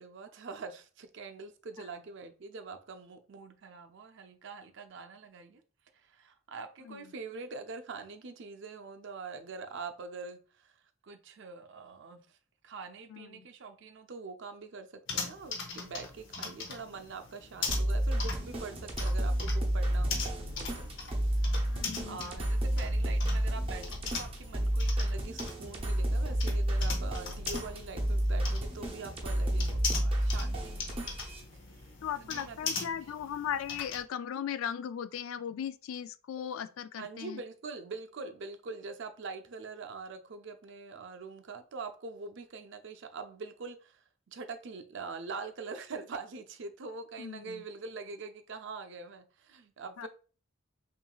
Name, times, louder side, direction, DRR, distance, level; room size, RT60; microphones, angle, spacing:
voice 1, 0.0-5.6 5.9-12.4 12.6-20.9 21.1-31.2 31.7-33.0 37.0-50.1, right 4 dB, 60° right, 0.5 m, -44 dB
voice 2, 13.1-13.5 21.7-22.3 32.0-37.4 47.2-47.6 50.0-50.1, left 8 dB, 75° left, 0.3 m, -38 dB
sound 1, 15.1-34.0, left 4 dB, 60° left, 0.8 m, -41 dB
sound 2, 17.7-31.4, right 1 dB, 25° right, 0.8 m, -31 dB
5.8 x 2.5 x 2.3 m
head